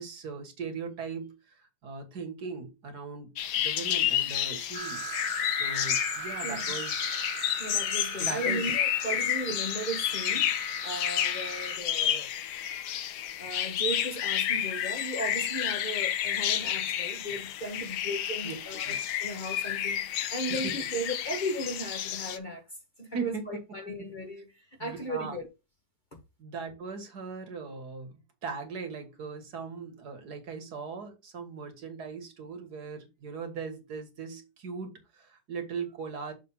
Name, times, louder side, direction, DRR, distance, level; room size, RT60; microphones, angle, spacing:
voice 1, 0.0-3.3 3.6-5.1 5.5-7.2 8.2-8.7 18.4-18.5 18.8-19.1 20.4-20.7 23.1-23.4 24.8-25.4 26.4-36.3, right 5 dB, 70° right, 2.0 m, -39 dB
sound 1, 3.4-22.4, left 11 dB, 80° left, 1.3 m, -30 dB
sound 2, 4.7-11.8, right 5 dB, 40° right, 1.3 m, -40 dB
voice 2, 7.6-12.3 13.4-22.6 23.0-25.5 26.1-26.2, right 1 dB, 30° left, 1.1 m, -36 dB
6.7 x 3.5 x 5.6 m
omnidirectional pair, 1.8 m